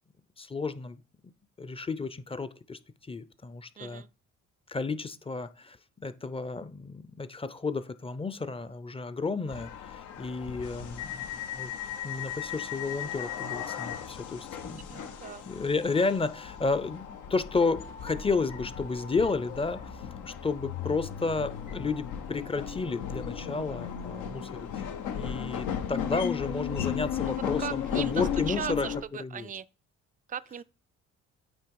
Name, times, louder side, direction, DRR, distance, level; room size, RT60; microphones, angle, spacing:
voice 1, 0.4-1.0 1.6-2.8 3.1-4.0 4.7-5.8 6.0-11.7 12.0-14.9 15.5-19.8 20.2-24.7 25.2-28.9 29.2-29.5, left 4 dB, 20° left, 0.6 m, -32 dB
voice 2, 3.8-4.1 14.9-15.5 27.2-27.3 27.6-29.6 30.3-30.6, right 8 dB, 30° right, 0.4 m, -38 dB
sound 1, 9.5-29.0, left 8 dB, 85° left, 1.1 m, -36 dB
8.8 x 2.9 x 4.7 m
cardioid pair, 90°, 30 cm